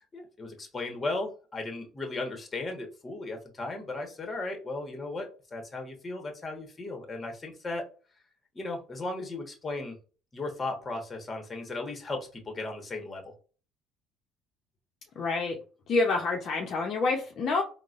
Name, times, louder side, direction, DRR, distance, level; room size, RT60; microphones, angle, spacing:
voice 1, 0.1-7.8 8.5-10.0 10.3-13.2, left 2 dB, 25° left, 3 dB, 1.1 m, -36 dB
voice 2, 15.2-15.6 15.9-17.6, left 3 dB, 50° left, 1 dB, 0.7 m, -27 dB
3.8 x 2.1 x 2.5 m, 0.36 s
supercardioid pair, 100°, 0 cm